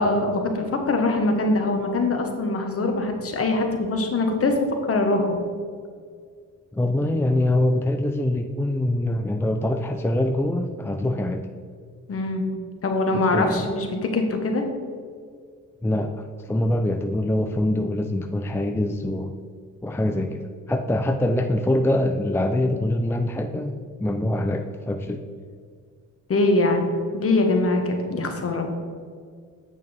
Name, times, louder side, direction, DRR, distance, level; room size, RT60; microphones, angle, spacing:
voice 1, 0.0-4.5 4.9-5.4 12.1-12.5 12.8-14.6 26.3-28.7, left 2 dB, 45° left, 3 dB, 1.3 m, -23 dB
voice 2, 6.7-11.4 13.1-13.7 15.8-19.4 19.8-23.7 24.0-25.2, left 1 dB, 10° left, 5 dB, 0.4 m, -24 dB
8.4 x 6.6 x 3.4 m, 2.1 s
cardioid pair, 95°, 33 cm